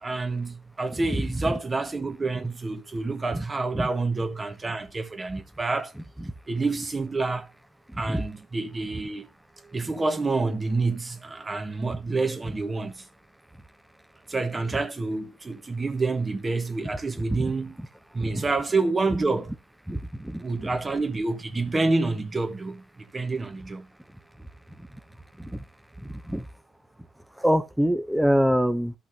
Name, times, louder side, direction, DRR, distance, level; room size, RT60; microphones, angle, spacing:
voice 1, 0.0-5.9 6.5-7.5 8.0-9.3 9.7-13.0 14.3-17.8 18.1-19.5 20.4-23.9, right 3 dB, 25° right, 1.5 m, -28 dB
voice 2, 19.9-20.4 25.4-25.6 26.3-26.4 27.4-28.9, equal, 5° right, 0.8 m, -24 dB
14.0 x 5.8 x 2.9 m
cardioid pair, 90°, 0 cm